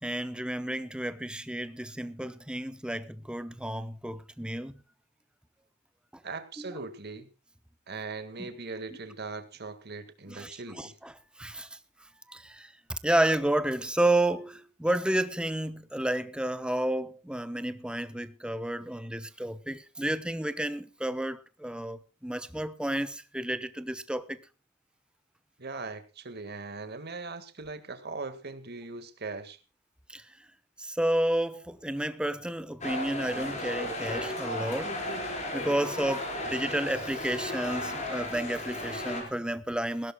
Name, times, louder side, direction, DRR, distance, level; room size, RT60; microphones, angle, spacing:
voice 1, 0.0-4.8 6.6-6.7 8.4-8.5 10.3-11.1 11.4-11.7 12.3-24.4 30.1-30.3 30.8-35.2 35.5-40.1, right 1 dB, 5° right, 0.9 m, -31 dB
voice 2, 6.2-7.3 7.9-11.0 25.6-29.6, right 3 dB, 50° right, 1.8 m, -40 dB
sound 1, 32.8-39.2, left 1 dB, 35° left, 4.9 m, -34 dB
20.5 x 16.5 x 2.3 m
head